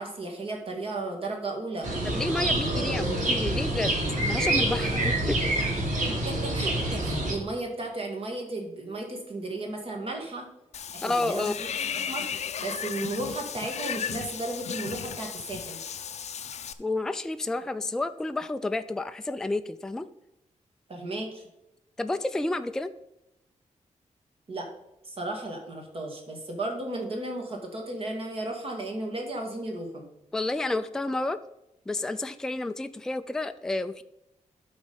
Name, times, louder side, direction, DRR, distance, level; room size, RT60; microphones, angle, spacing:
voice 1, 0.0-1.9 6.1-10.5 10.9-15.8 20.9-21.4 24.5-24.7 25.0-30.1, right 2 dB, 45° right, 2 dB, 2.0 m, -34 dB
sound 1, 1.8-7.3, right 1 dB, 80° right, 2.8 m, -27 dB
voice 2, 2.0-3.9 4.3-5.4 11.0-11.5 16.8-20.1 22.0-22.9 30.3-31.4 31.9-34.0, left 2 dB, 5° left, 10 dB, 0.3 m, -30 dB
Water / Bathtub (filling or washing), 10.7-16.7, left 8 dB, 60° left, 0.5 m, -35 dB
12.0 x 4.2 x 5.4 m, 0.89 s
wide cardioid pair, 160°, 13 cm